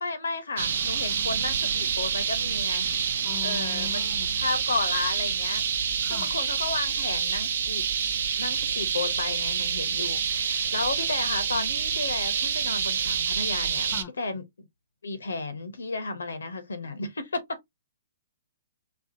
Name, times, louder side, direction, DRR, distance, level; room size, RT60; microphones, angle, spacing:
voice 1, 0.0-3.0 3.4-4.0 4.4-7.8 8.4-14.4 15.0-17.6, left 3 dB, 85° left, 0.7 m, -33 dB
sound 1, 0.6-14.0, right 7 dB, 65° right, 0.5 m, -27 dB
voice 2, 3.2-4.3 6.0-6.3 13.9-14.1, left 9 dB, 25° left, 0.6 m, -40 dB
4.2 x 2.3 x 2.6 m
hypercardioid pair, 130°, 0 cm